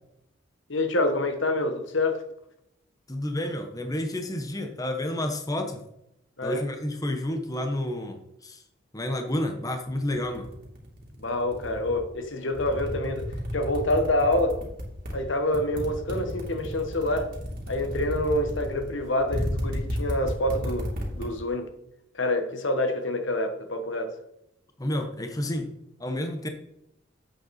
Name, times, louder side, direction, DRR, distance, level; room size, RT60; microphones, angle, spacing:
voice 1, 0.7-2.2 6.4-6.7 11.2-14.6 15.1-17.3 17.7-21.7 22.1-24.1, left 1 dB, 65° left, 1.4 m, -27 dB
voice 2, 3.1-5.8 6.4-8.6 8.9-10.5 24.8-25.7 26.0-26.5, left 1 dB, 20° left, 1.0 m, -30 dB
sound 1, 9.9-12.1 12.5-15.1 15.5-21.3, equal, 45° right, 2.9 m, -33 dB
10.5 x 8.1 x 4.2 m
head